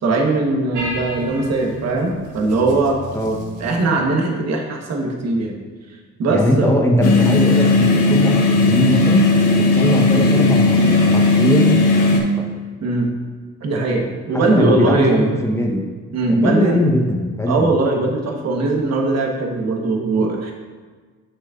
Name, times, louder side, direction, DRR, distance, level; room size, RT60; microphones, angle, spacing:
voice 1, 0.0-3.0 3.6-5.6 6.2-6.7 12.8-13.1 13.6-15.3 16.1-16.8 17.5-20.5, right 2 dB, 60° right, 1 dB, 1.3 m, -20 dB
sound 1, 0.7-4.0, right 1 dB, 85° right, 1.3 m, -33 dB
voice 2, 6.3-9.2 9.6-11.8 12.1-12.4 14.3-15.8 16.3-17.7, left 1 dB, 10° left, 0 dB, 1.0 m, -20 dB
sound 2, 7.0-12.2, left 3 dB, 80° left, 1.3 m, -15 dB
8.0 x 6.2 x 2.5 m, 1.5 s
cardioid pair, 90°, 30 cm